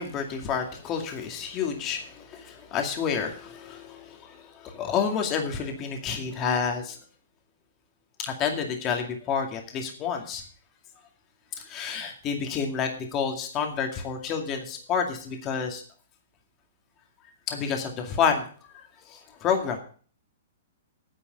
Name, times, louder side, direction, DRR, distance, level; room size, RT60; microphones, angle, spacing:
voice 1, 0.0-7.0 8.2-10.4 11.7-15.8 17.5-18.4 19.1-19.8, left 6 dB, 25° left, 4 dB, 2.3 m, -29 dB
9.6 x 8.2 x 7.8 m, 0.43 s
hypercardioid pair, 160°, 0 cm